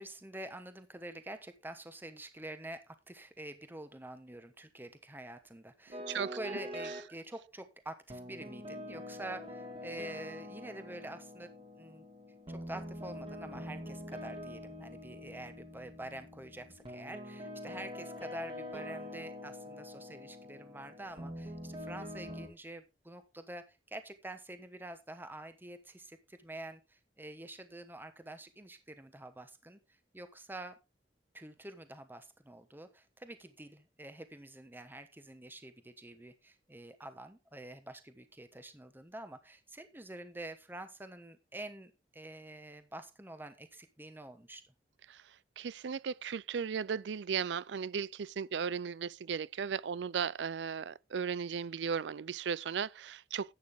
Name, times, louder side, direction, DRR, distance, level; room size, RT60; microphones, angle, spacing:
voice 1, 0.0-11.5 11.8-12.0 12.5-29.8 30.1-30.8 31.3-44.6, right 1 dB, 10° right, 1.1 m, -47 dB
sound 1, 5.9-7.1 8.1-22.5, left 1 dB, 30° right, 2.4 m, -45 dB
voice 2, 45.6-53.5, right 6 dB, 85° right, 0.4 m, -36 dB
11.5 x 8.6 x 3.6 m
head